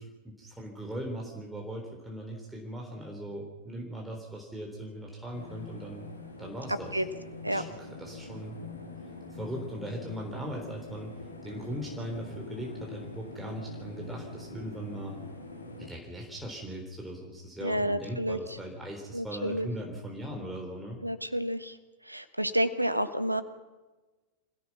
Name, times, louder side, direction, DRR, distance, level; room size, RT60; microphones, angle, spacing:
voice 1, 0.0-6.1 6.4-7.0 7.5-8.6 9.3-15.2 15.8-21.0, equal, 5° right, -1 dB, 3.7 m, -39 dB
sound 1, 5.3-15.9, left 2 dB, 80° left, 3.3 m, -44 dB
voice 2, 17.6-18.4 19.1-19.7 21.0-21.8 22.0-23.4, equal, 85° right, 13 dB, 1.2 m, -29 dB
27.0 x 16.5 x 6.0 m, 1.2 s
figure-of-eight pair, 90°, 0 cm